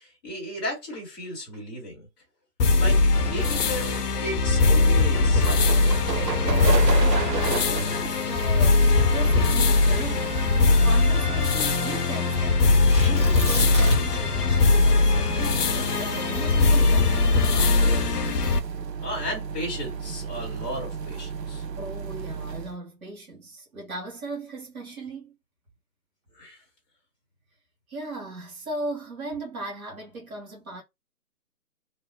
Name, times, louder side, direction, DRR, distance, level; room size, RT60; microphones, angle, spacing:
voice 1, 0.0-2.1 2.8-6.5 19.0-21.6 26.3-26.6, equal, 15° left, 0.9 m, -35 dB
sound 1, 2.6-18.6, left 3 dB, 70° left, 0.6 m, -21 dB
sound 2, 5.4-22.8, right 5 dB, 85° right, 0.6 m, -34 dB
voice 2, 7.2-12.7 13.0-18.0 21.8-25.4 27.9-30.8, right 2 dB, 60° right, 1.5 m, -38 dB
Tearing, 12.9-14.3 14.6-14.7 15.2-17.6 18.3-18.7, equal, 20° right, 0.5 m, -29 dB
2.9 x 2.0 x 2.7 m
figure-of-eight pair, 145°, 48 cm